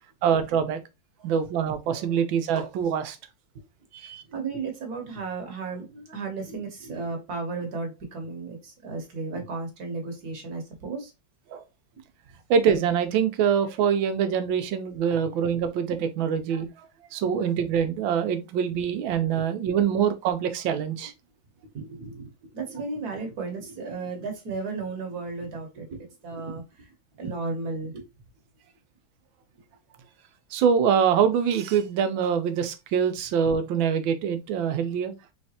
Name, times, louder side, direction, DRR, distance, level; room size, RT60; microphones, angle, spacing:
voice 1, 0.2-0.8 1.2-3.2 4.0-4.2 11.5-11.6 12.5-16.7 17.1-21.1 30.5-35.1, right 7 dB, 85° right, 1.4 m, -24 dB
voice 2, 4.0-11.1 18.8-18.9 19.3-19.4 21.7-22.3 22.5-26.9 27.2-28.0, right 4 dB, 55° right, 1.4 m, -34 dB
4.0 x 3.2 x 2.8 m
omnidirectional pair, 2.1 m